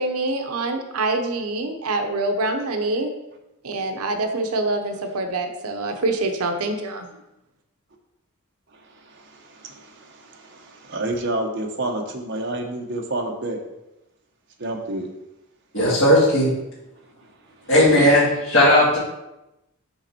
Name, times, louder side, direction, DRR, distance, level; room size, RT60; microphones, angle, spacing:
voice 1, 0.0-3.1 3.6-7.1, right 2 dB, 90° right, 5 dB, 0.8 m, -25 dB
voice 2, 8.7-13.6 14.6-15.1 17.8-18.1, right 1 dB, 55° right, 2 dB, 1.0 m, -29 dB
voice 3, 15.7-16.5 17.7-19.0, left 1 dB, 55° left, -9 dB, 2.1 m, -16 dB
5.6 x 5.3 x 4.3 m, 0.93 s
head